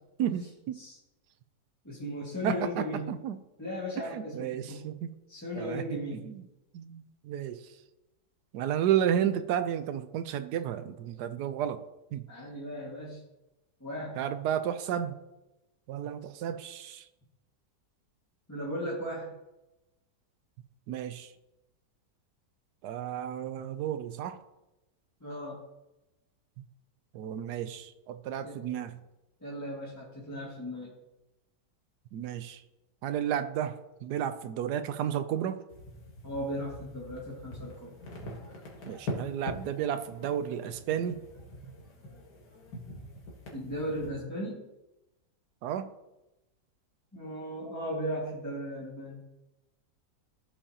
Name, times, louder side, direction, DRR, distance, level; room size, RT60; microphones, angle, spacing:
voice 1, 0.2-0.8 2.4-3.4 4.0-5.1 5.5-5.8 6.1-6.5 6.7-7.7 8.5-11.8 12.1-12.3 14.2-15.2 15.9-17.1 20.9-21.3 22.8-24.4 26.6-26.7 27.1-29.0 32.1-32.6 33.0-35.6 38.8-41.2 41.6-41.8 45.6-45.9, right 9 dB, 75° right, 11 dB, 1.1 m, -32 dB
voice 2, 1.8-3.1 3.6-4.9 5.3-6.2 12.3-13.2 13.8-14.2 18.5-19.4 25.2-25.6 28.4-28.6 29.4-30.9 36.2-37.9 43.5-44.6 47.1-49.2, equal, 10° left, -7 dB, 1.8 m, -36 dB
sound 1, 35.7-44.1, left 1 dB, 65° left, 2.1 m, -43 dB
14.5 x 5.5 x 2.9 m, 0.96 s
omnidirectional pair, 1.9 m